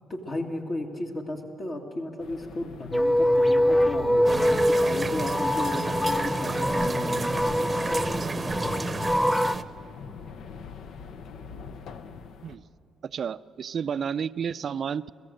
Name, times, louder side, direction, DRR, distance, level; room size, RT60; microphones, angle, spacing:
voice 1, 0.1-9.3, left 1 dB, 45° left, 0 dB, 2.1 m, -35 dB
sound 1, 2.2-12.6, left 5 dB, 75° left, 0.8 m, -45 dB
sound 2, 2.9-9.5, equal, 10° left, 0.5 m, -24 dB
sound 3, 4.3-9.6, right 3 dB, 25° right, 0.8 m, -32 dB
voice 2, 13.0-15.1, right 7 dB, 55° right, 15 dB, 0.4 m, -31 dB
24.0 x 15.5 x 7.8 m, 2.9 s
cardioid pair, 90°, 0 cm